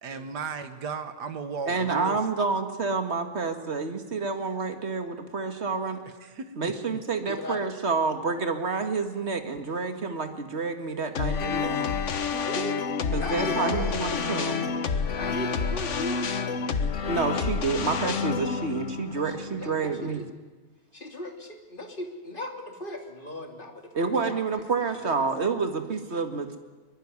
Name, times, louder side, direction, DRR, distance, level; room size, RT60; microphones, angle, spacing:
voice 1, 0.0-2.2 6.2-6.7, right 5 dB, 90° right, 8 dB, 2.0 m, -35 dB
voice 2, 1.7-6.0 6.6-11.9 13.1-14.6 17.1-20.2 23.9-26.6, right 4 dB, 40° right, 6 dB, 2.2 m, -29 dB
voice 3, 7.1-7.6 12.4-13.9 15.1-16.3 18.5-18.7 19.3-19.4 19.6-19.7 20.0-20.2 20.9-24.4, left 1 dB, 30° left, 3 dB, 3.0 m, -37 dB
sound 1, 11.2-20.3, left 5 dB, 50° left, 1.4 m, -29 dB
22.5 x 22.0 x 9.7 m, 1.3 s
omnidirectional pair, 1.7 m